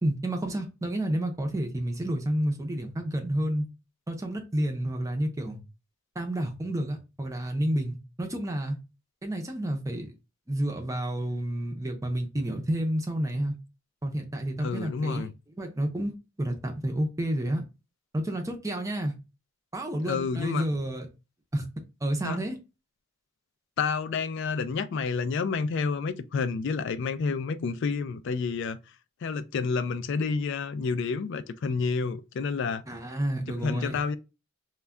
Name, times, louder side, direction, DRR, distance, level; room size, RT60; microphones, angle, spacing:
voice 1, 0.0-3.7 4.1-5.6 6.2-8.8 9.2-10.1 10.5-13.5 14.0-15.3 15.6-17.6 18.1-19.1 19.7-21.1 21.5-21.7 22.0-22.6 32.9-34.0, right 1 dB, 15° right, 0.5 m, -30 dB
voice 2, 14.6-15.3 20.0-20.7 22.2-22.4 23.8-28.8 29.2-32.8 33.5-34.2, left 5 dB, 55° left, 0.3 m, -29 dB
2.2 x 2.1 x 3.5 m
head